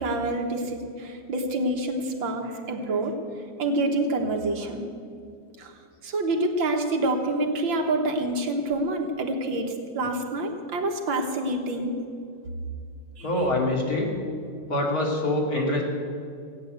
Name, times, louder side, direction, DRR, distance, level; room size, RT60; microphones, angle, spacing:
voice 1, 0.0-3.1 3.6-4.8 5.6-5.7 6.0-11.9 13.2-13.3, right 2 dB, 70° right, 3 dB, 2.1 m, -27 dB
voice 2, 13.2-14.1 14.7-15.8, left 1 dB, 45° left, -1 dB, 2.9 m, -25 dB
17.0 x 9.4 x 8.1 m, 2.4 s
omnidirectional pair, 2.2 m